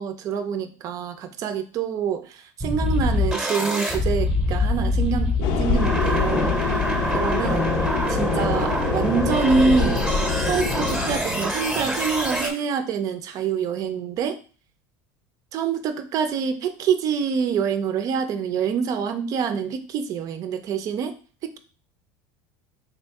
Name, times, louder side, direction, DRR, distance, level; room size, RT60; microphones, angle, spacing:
voice 1, 0.0-6.6 7.1-7.7 8.1-10.1 10.5-14.4 15.5-21.1 21.4-21.6, right 6 dB, 45° right, 9 dB, 0.5 m, -26 dB
sound 1, 2.6-12.5, left 1 dB, 5° right, 0.8 m, -25 dB
sound 2, 5.4-11.2, left 5 dB, 60° left, 0.6 m, -25 dB
3.7 x 2.6 x 3.4 m, 0.38 s
supercardioid pair, 120°, 8 cm